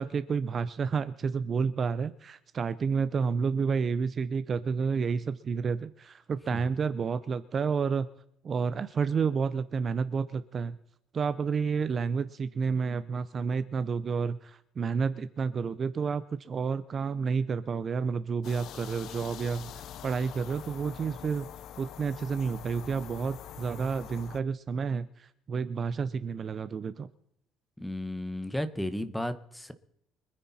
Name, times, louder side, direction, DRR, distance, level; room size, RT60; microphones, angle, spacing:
voice 1, 0.0-8.1 8.4-10.8 11.1-21.5 21.8-27.1, right 5 dB, 30° right, 14 dB, 0.6 m, -30 dB
sound 1, 18.4-24.4, left 10 dB, 55° left, 0.7 m, -44 dB
voice 2, 27.8-29.7, left 1 dB, 5° left, 12 dB, 1.1 m, -34 dB
25.0 x 9.9 x 4.2 m, 0.73 s
cardioid pair, 145°, 0 cm